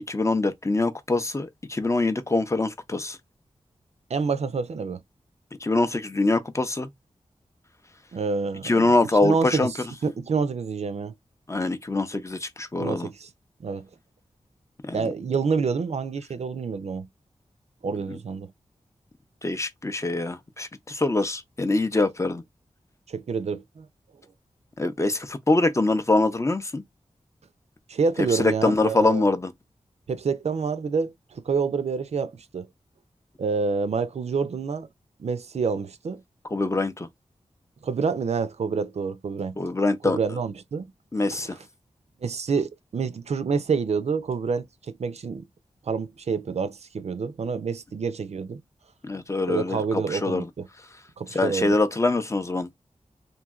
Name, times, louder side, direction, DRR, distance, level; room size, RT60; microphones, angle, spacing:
voice 1, 0.1-3.2 5.6-6.9 8.6-9.7 11.5-13.1 14.8-15.1 18.1-18.2 19.4-22.4 24.8-26.8 28.4-29.5 36.5-37.1 39.6-40.2 41.1-41.6 49.0-50.5 51.3-52.7, left 2 dB, 25° left, 0.5 m, -24 dB
voice 2, 4.1-5.0 8.1-8.9 9.2-9.8 10.0-11.1 12.8-13.3 13.6-13.9 14.9-17.1 17.8-18.5 23.1-23.9 27.9-29.2 30.1-32.7 33.4-34.9 35.2-36.2 37.8-39.6 40.0-40.9 41.3-41.5 42.2-45.5 45.9-48.6 49.4-50.7 51.2-51.7, right 5 dB, 65° right, 0.4 m, -27 dB
3.0 x 2.6 x 2.3 m
wide cardioid pair, 70°, 12 cm